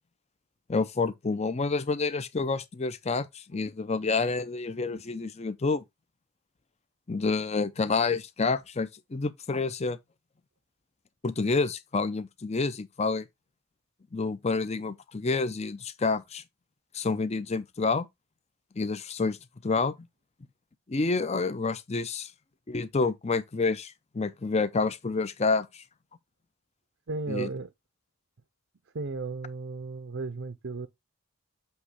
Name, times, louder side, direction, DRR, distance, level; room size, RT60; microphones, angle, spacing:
voice 1, 0.7-5.8 7.1-10.0 11.2-13.2 14.1-16.4 16.9-18.1 18.8-19.4 19.6-19.9 20.9-22.3 22.7-25.7 27.3-27.5, left 4 dB, 30° left, 0.5 m, -28 dB
voice 2, 27.1-27.7 28.9-30.9, right 3 dB, 55° right, 0.6 m, -34 dB
7.9 x 3.0 x 4.8 m
head